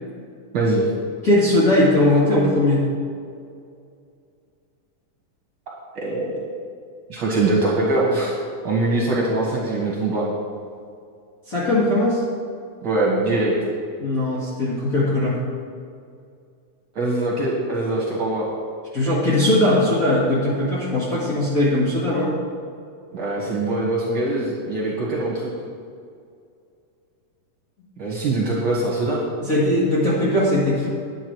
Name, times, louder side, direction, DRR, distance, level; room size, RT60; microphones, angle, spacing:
voice 1, 0.5-0.9 5.7-6.4 7.1-8.3 8.6-10.2 12.8-13.5 16.9-18.5 23.1-25.5 28.0-29.2, right 2 dB, 50° right, -4 dB, 2.0 m, -22 dB
voice 2, 1.2-2.8 11.5-12.2 14.0-15.4 18.9-22.3 29.4-30.9, left 1 dB, 35° left, -8 dB, 1.8 m, -19 dB
9.9 x 9.1 x 4.6 m, 2.3 s
omnidirectional pair, 3.6 m